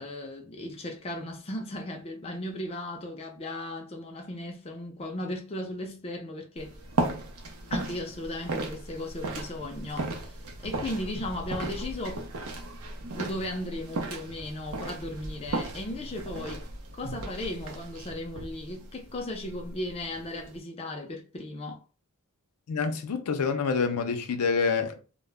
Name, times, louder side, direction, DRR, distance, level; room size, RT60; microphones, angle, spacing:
voice 1, 0.0-6.8 7.7-10.3 10.6-12.3 13.1-16.6 16.9-21.8, left 1 dB, 25° left, 0.4 m, -36 dB
sound 1, 6.6-20.6, right 2 dB, 70° right, 0.6 m, -36 dB
voice 2, 22.7-25.0, left 5 dB, 90° left, 0.5 m, -27 dB
2.1 x 2.0 x 3.3 m
head